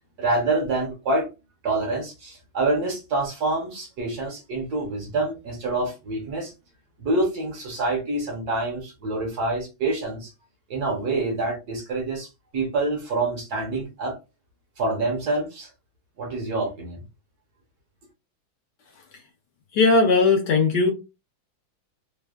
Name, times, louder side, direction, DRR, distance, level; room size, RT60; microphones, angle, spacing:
voice 1, 0.2-1.3 1.6-6.5 7.0-10.3 10.7-14.2 14.8-15.7 16.2-17.0, right 2 dB, 60° right, 1.2 m, -26 dB
voice 2, 19.7-20.9, left 3 dB, 70° left, 1.1 m, -18 dB
3.3 x 2.2 x 2.2 m
omnidirectional pair, 2.2 m